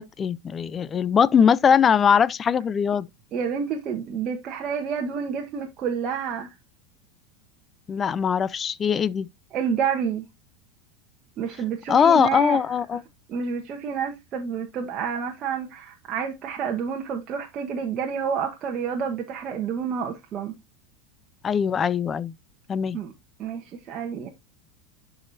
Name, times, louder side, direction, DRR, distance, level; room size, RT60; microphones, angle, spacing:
voice 1, 0.0-3.1 7.9-9.3 11.9-13.0 21.4-22.3 22.7-23.0, left 7 dB, 25° left, 0.4 m, -21 dB
voice 2, 3.3-6.5 9.5-10.3 11.4-12.6 13.3-20.6 22.9-23.1 23.4-24.3, right 7 dB, 40° right, 1.2 m, -29 dB
10.5 x 4.9 x 2.6 m
supercardioid pair, 115°, 0 cm